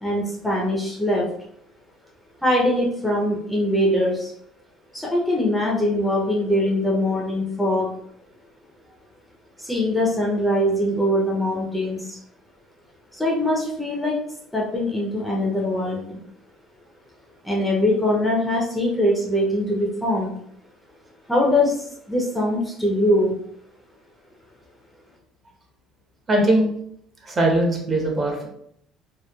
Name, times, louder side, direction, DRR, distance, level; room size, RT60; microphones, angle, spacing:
voice 1, 0.0-1.2 2.4-4.3 4.9-7.9 9.6-12.2 13.1-14.2 14.5-16.2 17.4-20.3 21.3-23.3, left 1 dB, 5° left, -3 dB, 0.5 m, -22 dB
voice 2, 26.3-26.7 27.2-28.5, right 1 dB, 30° right, 0 dB, 0.7 m, -20 dB
2.9 x 2.1 x 2.2 m, 0.69 s
cardioid pair, 120°, 0 cm